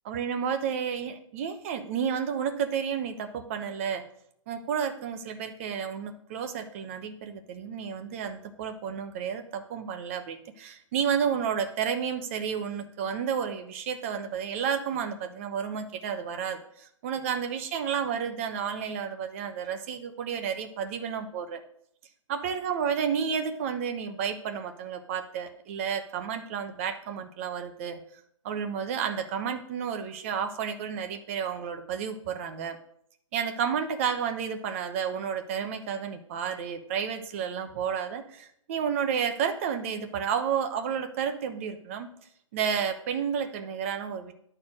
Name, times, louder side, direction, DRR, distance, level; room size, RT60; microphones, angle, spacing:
voice 1, 0.0-4.0 4.5-21.6 22.3-28.0 28.4-32.8 33.3-42.1 42.5-44.3, right 7 dB, 25° right, 7 dB, 1.0 m, -31 dB
11.5 x 4.5 x 7.5 m, 0.70 s
hypercardioid pair, 170°, 17 cm